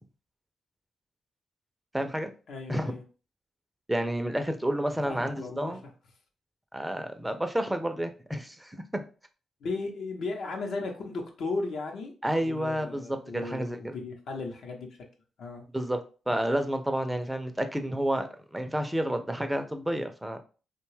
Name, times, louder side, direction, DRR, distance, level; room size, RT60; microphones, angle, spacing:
voice 1, 1.9-2.3 2.7-3.0 3.9-5.8 6.7-9.0 12.2-14.0 15.7-16.0 16.3-20.4, right 1 dB, 10° right, 7 dB, 0.4 m, -30 dB
voice 2, 2.5-3.0 5.1-5.7 9.6-12.1 12.4-14.9 15.4-15.6, left 3 dB, 75° left, 2 dB, 0.7 m, -35 dB
2.7 x 2.2 x 3.2 m, 0.35 s
cardioid pair, 65°, 0 cm